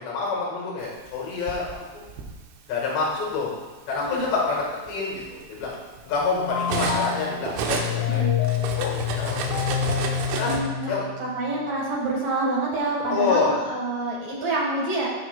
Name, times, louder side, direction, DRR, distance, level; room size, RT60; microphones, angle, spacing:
voice 1, 0.0-2.0 2.7-3.5 3.9-5.7 6.1-8.3 8.7-9.9 10.4-10.5 10.9-11.0 13.1-13.6, left 4 dB, 75° left, -3 dB, 3.5 m, -27 dB
Cutlery silverware, 1.1-2.4 3.3-3.5 3.9-7.2 7.4-10.6, right 5 dB, 85° right, 3.2 m, -32 dB
sound 1, 6.1-11.5, left 9 dB, 90° left, 3.2 m, -28 dB
voice 2, 10.4-10.9 11.2-15.1, right 2 dB, 60° right, -4 dB, 1.8 m, -27 dB
15.5 x 6.2 x 2.2 m, 1.3 s
omnidirectional pair, 5.2 m